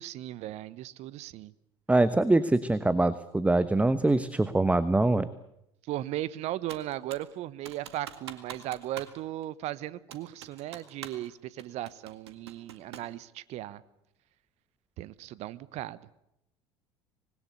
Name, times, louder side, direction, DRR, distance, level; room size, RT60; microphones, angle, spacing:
voice 1, 0.0-1.5 5.8-13.8 15.0-16.0, right 14 dB, 55° right, 18 dB, 1.1 m, -37 dB
voice 2, 1.9-5.3, right 2 dB, 10° right, 14 dB, 1.1 m, -24 dB
Computer keyboard, 6.7-7.3 7.7-9.2 9.4-9.5 10.1-11.3 11.6-13.2, right 9 dB, 75° right, 2.0 m, -45 dB
26.0 x 20.5 x 8.1 m, 0.82 s
figure-of-eight pair, 65°, 14 cm